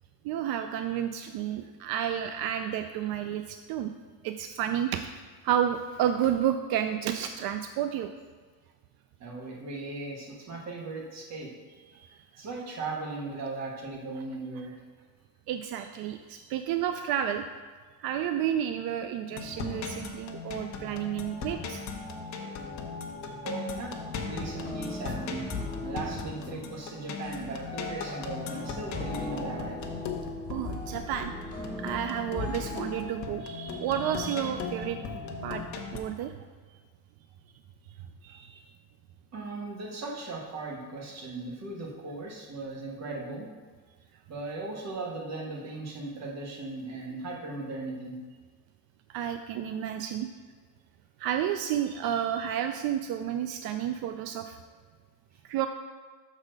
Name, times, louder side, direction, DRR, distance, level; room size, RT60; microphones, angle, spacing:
voice 1, 0.2-3.9 4.2-5.1 5.4-8.1 15.5-17.5 18.0-21.8 30.5-31.3 31.8-35.0 35.4-35.6 35.9-36.3 38.2-38.6 49.1-50.3 51.2-54.6 55.4-55.7, right 10 dB, 85° right, 7 dB, 0.5 m, -31 dB
voice 2, 9.2-11.5 12.4-14.7 23.4-23.9 24.2-25.5 25.8-29.8 39.3-43.5 44.3-48.2 53.8-53.9, right 3 dB, 50° right, -2 dB, 1.5 m, -38 dB
sound 1, 19.3-36.0, left 5 dB, 55° left, 0.8 m, -38 dB
sound 2, 23.1-23.4 24.0-24.2 24.8-26.8 27.4-27.6 28.2-30.2 30.8-31.1 31.7-31.9 32.5-32.8 33.2-36.0, left 2 dB, 5° left, 1.4 m, -48 dB
sound 3, 24.3-33.1, left 2 dB, 20° left, 1.8 m, -39 dB
6.2 x 4.2 x 6.4 m, 1.5 s
cardioid pair, 175°, 35 cm